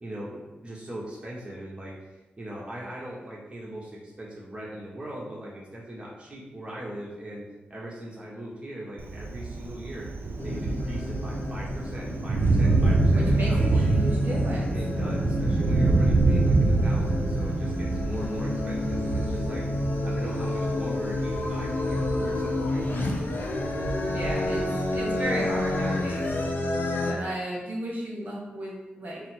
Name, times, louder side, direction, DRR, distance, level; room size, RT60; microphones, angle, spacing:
voice 1, 0.0-10.1 10.4-13.9 14.7-19.7 20.0-23.1, right 1 dB, 30° right, -5 dB, 1.2 m, -40 dB
Thunder, 9.0-26.5, right 3 dB, 70° right, 0.4 m, -27 dB
sound 1, 10.4-27.1, left 2 dB, 65° left, 0.6 m, -30 dB
voice 2, 13.1-14.7 24.1-24.7 24.9-26.3 27.0-29.2, right 1 dB, 55° right, -5 dB, 1.1 m, -34 dB
3.8 x 2.1 x 4.5 m, 1.1 s
cardioid pair, 55°, 4 cm